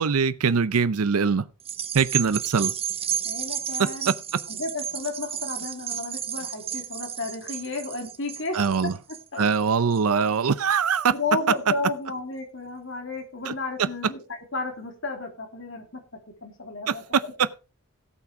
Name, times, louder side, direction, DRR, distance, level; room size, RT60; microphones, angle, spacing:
voice 1, 0.0-1.5 1.9-2.7 3.8-4.4 8.5-8.9 9.4-11.2 13.4-13.5 13.8-13.9 16.9-17.5, right 6 dB, 80° right, 0.6 m, -23 dB
sound 1, 1.6-10.3 10.8-10.9, right 9 dB, 25° right, 0.8 m, -32 dB
voice 2, 3.2-4.1 4.5-8.6 9.3-9.4 11.1-14.2 14.5-16.0 16.4-17.3, left 3 dB, 55° left, 3.0 m, -32 dB
17.0 x 6.0 x 4.8 m
head